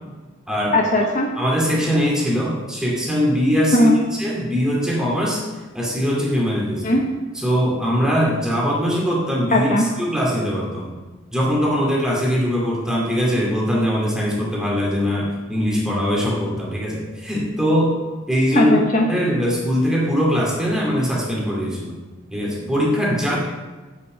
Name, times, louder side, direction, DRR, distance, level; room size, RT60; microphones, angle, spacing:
voice 1, 0.7-1.3 3.7-4.0 6.8-7.1 9.5-9.8 18.5-19.0, left 1 dB, 40° left, 0 dB, 1.1 m, -17 dB
voice 2, 1.4-3.9 4.2-5.4 5.7-7.0 7.3-11.0 11.3-18.0 18.3-18.7 19.1-22.0 22.3-23.4, equal, 5° right, -3 dB, 2.4 m, -21 dB
7.9 x 7.0 x 7.5 m, 1.3 s
head